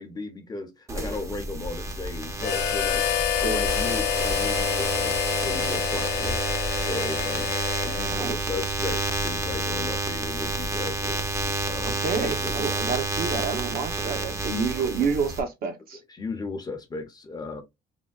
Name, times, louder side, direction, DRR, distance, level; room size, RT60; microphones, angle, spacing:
voice 1, 0.0-11.3 11.6-12.6 14.7-15.1 15.9-17.6, left 3 dB, 25° left, 0.6 m, -36 dB
sound 1, 0.9-15.4, right 3 dB, 15° right, 0.6 m, -29 dB
Harmonica, 2.4-8.4, left 10 dB, 75° left, 0.5 m, -28 dB
voice 2, 11.8-16.0, right 5 dB, 60° right, 0.8 m, -29 dB
3.4 x 2.1 x 2.3 m
cardioid pair, 110°, 17 cm